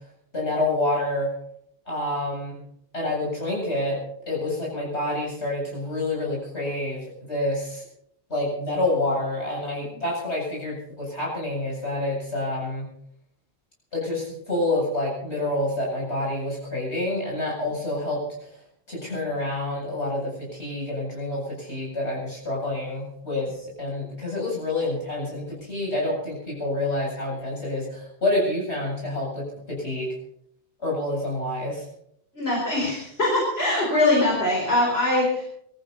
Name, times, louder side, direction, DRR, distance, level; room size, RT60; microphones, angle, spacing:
voice 1, 0.3-1.3 1.9-2.6 2.9-4.0 4.3-7.9 8.3-12.9 13.9-18.5 18.9-30.1 30.8-31.9, left 2 dB, 90° left, -3 dB, 8.3 m, -28 dB
voice 2, 32.3-35.4, left 2 dB, 70° left, -3 dB, 4.9 m, -22 dB
23.5 x 14.5 x 4.1 m, 0.70 s
omnidirectional pair, 1.1 m